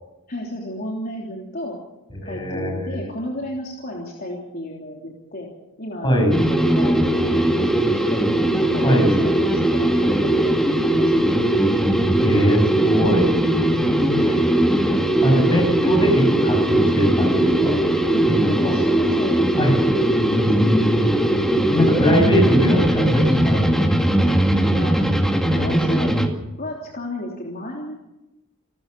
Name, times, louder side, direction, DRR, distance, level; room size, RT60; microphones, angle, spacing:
voice 1, 0.3-1.8 2.2-5.5 5.8-8.2 8.6-11.5 13.8-15.0 18.1-19.5 20.4-20.8 21.6-22.1 24.7-24.9 25.5-26.1 26.6-28.0, left 1 dB, 45° left, -2 dB, 3.3 m, -34 dB
voice 2, 2.2-3.0 6.0-6.4 8.8-9.1 12.2-13.3 15.2-17.7 18.3-18.8 19.6-19.8 20.3-20.9 21.7-23.8, equal, 20° left, 1 dB, 7.4 m, -20 dB
sound 1, 6.3-26.3, right 1 dB, ahead, 2.1 m, -19 dB
29.0 x 13.5 x 6.9 m, 0.97 s
head